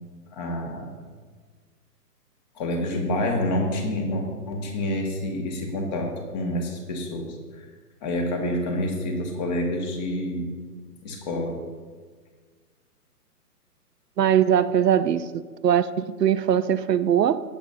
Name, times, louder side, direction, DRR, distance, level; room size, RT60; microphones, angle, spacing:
voice 1, 0.3-0.9 2.5-7.6 8.0-10.5 11.0-11.6, left 1 dB, 25° left, 1 dB, 1.7 m, -28 dB
voice 2, 14.2-17.4, right 9 dB, 85° right, 12 dB, 0.7 m, -21 dB
18.0 x 7.2 x 2.7 m, 1.5 s
hypercardioid pair, 150°, 47 cm